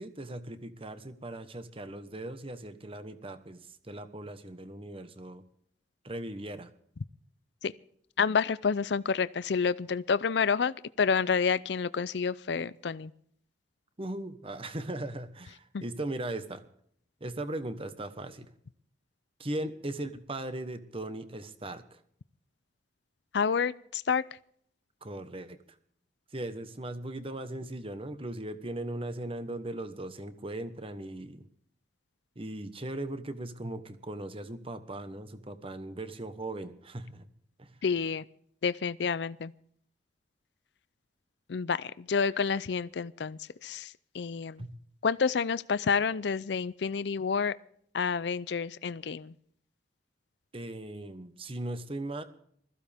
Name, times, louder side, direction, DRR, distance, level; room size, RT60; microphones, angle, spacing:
voice 1, 0.0-5.4 6.0-6.7 14.0-16.6 17.2-18.5 19.4-22.0 25.0-25.6 26.3-31.4 32.3-37.3 37.6-37.8 44.6-44.7 50.5-52.2, right 1 dB, 30° right, 10 dB, 1.2 m, -38 dB
voice 2, 8.2-13.1 15.7-15.8 23.3-24.2 37.8-38.2 38.6-39.5 41.5-44.6 45.0-47.5 47.9-49.3, left 5 dB, 70° left, 17 dB, 0.5 m, -29 dB
21.0 x 15.0 x 3.5 m, 0.65 s
head